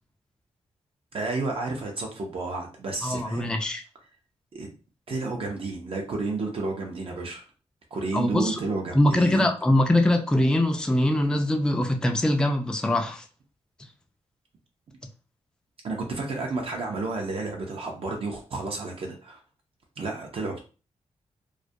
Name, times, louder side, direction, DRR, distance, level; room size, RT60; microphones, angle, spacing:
voice 1, 1.1-3.5 4.5-4.7 5.1-7.5 7.9-9.5 15.8-19.4 20.0-20.6, right 3 dB, 55° right, 1 dB, 0.5 m, -31 dB
voice 2, 3.0-3.8 8.1-8.6 9.0-13.2, left 1 dB, 5° left, 4 dB, 0.3 m, -22 dB
2.3 x 2.1 x 2.6 m, 0.35 s
cardioid pair, 95°, 12 cm